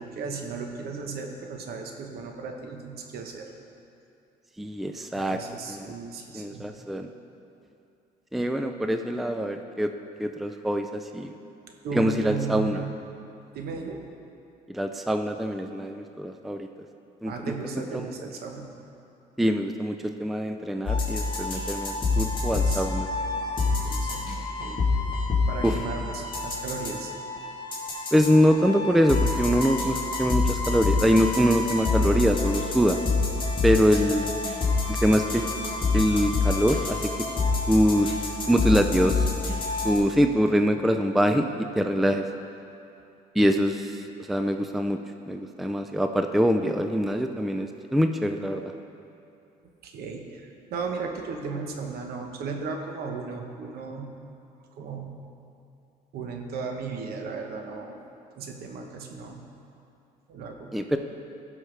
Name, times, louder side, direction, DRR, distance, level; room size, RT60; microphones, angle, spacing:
voice 1, 0.0-3.5 5.1-6.7 11.8-12.9 13.5-14.0 17.2-18.7 22.5-22.9 23.3-24.8 25.5-27.1 33.7-34.0 49.8-54.1 54.8-55.3 56.1-58.0 58.4-59.5 60.3-60.7, right 4 dB, 65° right, 3 dB, 1.1 m, -36 dB
voice 2, 4.6-5.4 5.7-5.9 6.3-7.1 8.3-9.9 10.2-11.3 11.9-12.8 14.7-16.7 17.2-17.6 17.9-18.2 19.4-23.1 25.6-25.7 28.1-33.0 33.6-34.3 35.0-35.4 35.9-37.0 37.7-38.1 38.5-39.3 39.8-42.3 43.4-44.0 44.3-45.0 45.3-48.6 60.7-61.0, equal, ahead, 6 dB, 0.4 m, -24 dB
sound 1, 20.9-40.0, left 3 dB, 30° left, 2.1 m, -27 dB
16.0 x 5.6 x 3.3 m, 2.7 s
cardioid pair, 110°, 17 cm